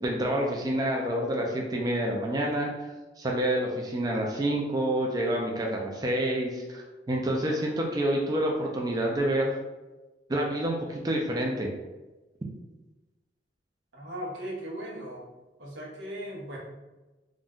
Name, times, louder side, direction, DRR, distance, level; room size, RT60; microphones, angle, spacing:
voice 1, 0.0-9.6 10.3-11.7, right 1 dB, 20° right, -1 dB, 0.3 m, -28 dB
voice 2, 13.9-15.3 15.6-16.6, right 1 dB, 85° right, -3 dB, 0.8 m, -38 dB
2.5 x 2.1 x 3.5 m, 1.1 s
head